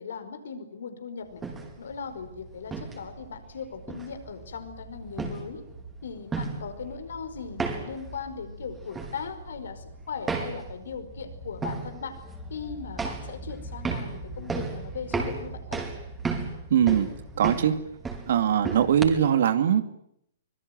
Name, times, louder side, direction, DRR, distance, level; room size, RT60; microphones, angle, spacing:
voice 1, 0.0-1.4 1.8-5.6 6.0-12.2 12.5-15.9, left 6 dB, 65° left, 9 dB, 5.1 m, -38 dB
sound 1, 1.3-19.0, right 4 dB, 15° right, 5.0 m, -36 dB
voice 2, 16.7-17.7 18.3-19.8, right 9 dB, 60° right, 10 dB, 2.6 m, -22 dB
25.5 x 21.5 x 9.5 m, 0.74 s
figure-of-eight pair, 115°, 0 cm